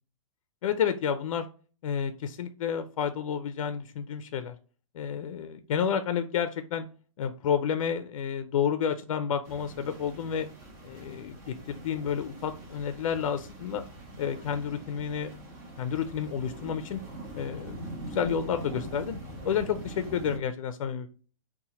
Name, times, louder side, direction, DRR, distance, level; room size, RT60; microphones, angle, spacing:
voice 1, 0.6-1.5 1.8-4.5 4.9-6.9 7.2-10.5 10.8-13.8 14.2-15.3 15.8-17.0 17.3-19.2 19.4-21.1, left 8 dB, 75° left, 10 dB, 0.4 m, -30 dB
sound 1, 9.4-20.4, right 1 dB, 35° right, 1.0 m, -43 dB
4.1 x 2.2 x 2.8 m, 0.39 s
hypercardioid pair, 170°, 17 cm